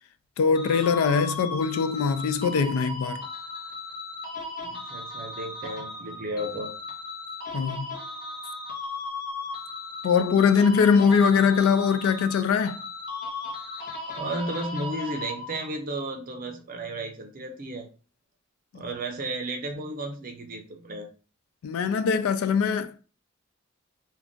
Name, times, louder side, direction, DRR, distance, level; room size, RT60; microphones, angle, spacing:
voice 1, 0.4-3.2 7.5-7.9 10.0-12.8 18.7-18.8 21.6-23.0, left 6 dB, 85° left, 0.3 m, -22 dB
sound 1, 0.5-15.8, left 3 dB, 45° left, 0.8 m, -36 dB
voice 2, 4.6-6.7 14.1-17.9 18.7-21.1, right 1 dB, 45° right, 0.6 m, -33 dB
2.5 x 2.3 x 3.6 m
head